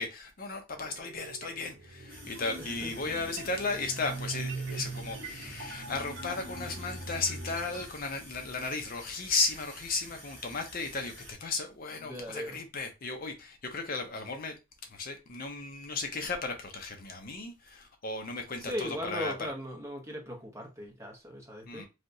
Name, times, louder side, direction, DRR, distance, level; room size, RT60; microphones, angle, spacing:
voice 1, 0.0-14.5 14.9-19.3 21.7-21.8, left 3 dB, 45° left, 0.6 m, -35 dB
sound 1, 0.8-7.9, right 2 dB, 65° right, 0.8 m, -41 dB
sound 2, 2.1-11.3, equal, 10° left, 1.2 m, -50 dB
voice 2, 2.6-3.1 12.0-12.6 18.6-21.8, equal, 15° right, 0.8 m, -39 dB
3.3 x 2.8 x 2.6 m
head